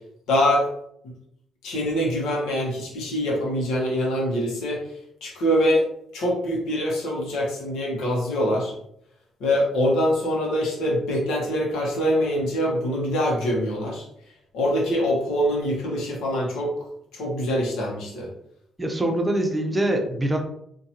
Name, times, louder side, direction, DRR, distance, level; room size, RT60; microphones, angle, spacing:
voice 1, 0.3-0.7 1.6-4.8 5.2-5.8 6.1-8.7 9.4-14.0 14.5-16.7 17.1-18.3, equal, 85° left, -2 dB, 1.3 m, -24 dB
voice 2, 18.8-20.4, right 1 dB, 15° right, 3 dB, 0.7 m, -24 dB
4.4 x 2.8 x 2.9 m, 0.73 s
cardioid pair, 90°, 0 cm